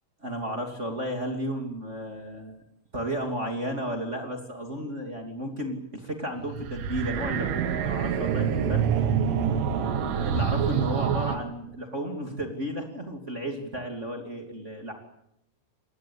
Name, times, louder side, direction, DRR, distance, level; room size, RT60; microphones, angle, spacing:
voice 1, 0.2-2.6 2.9-8.8 9.5-14.9, equal, 25° right, 3 dB, 1.7 m, -33 dB
sound 1, 6.4-11.4, right 7 dB, 70° right, 4.4 m, -26 dB
28.0 x 20.0 x 8.5 m, 0.79 s
omnidirectional pair, 5.9 m